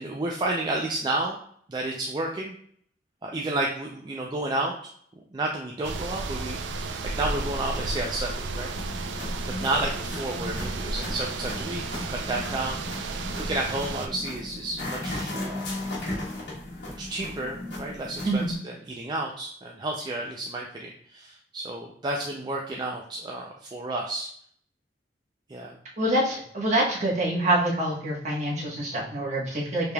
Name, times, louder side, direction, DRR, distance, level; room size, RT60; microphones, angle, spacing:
voice 1, 0.0-1.4 1.7-2.6 3.2-4.7 5.3-8.7 9.5-15.7 17.0-24.3 25.5-25.8, right 2 dB, 25° right, 0 dB, 0.3 m, -31 dB
sound 1, 5.8-14.1, right 3 dB, 90° right, 0.4 m, -33 dB
sound 2, 8.8-18.5, left 1 dB, 80° left, 1.2 m, -36 dB
voice 2, 26.0-29.9, right 1 dB, 40° right, -4 dB, 1.2 m, -26 dB
4.7 x 3.3 x 2.2 m, 0.63 s
head